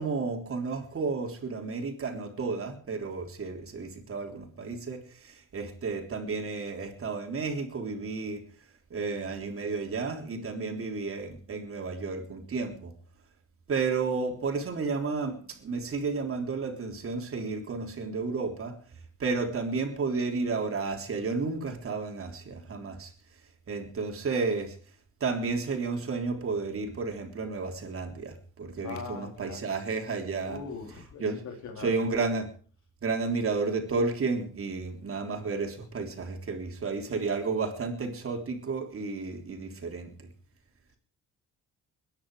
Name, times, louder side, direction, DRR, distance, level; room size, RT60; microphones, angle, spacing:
voice 1, 0.0-8.4 8.9-12.9 13.7-18.8 19.2-23.1 23.7-24.8 25.2-30.6 31.2-31.4 31.8-32.5 33.0-40.3, right 4 dB, 45° right, 3.7 m, -32 dB
voice 2, 28.8-29.7 30.4-31.9, left 5 dB, 70° left, 4.0 m, -41 dB
21.5 x 10.5 x 5.0 m
cardioid pair, 90°, 30 cm